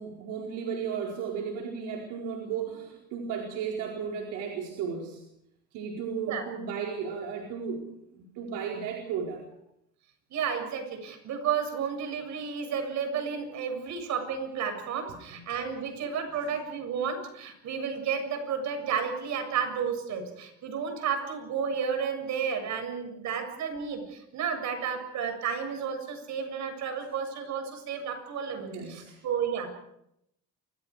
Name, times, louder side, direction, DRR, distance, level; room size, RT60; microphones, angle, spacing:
voice 1, 0.0-5.2 5.7-7.9 8.1-9.4 28.6-29.2, right 6 dB, 85° right, -1 dB, 4.6 m, -34 dB
voice 2, 10.3-29.7, right 6 dB, 65° right, 6 dB, 7.4 m, -32 dB
29.5 x 26.0 x 4.9 m, 0.79 s
cardioid pair, 105°, 30 cm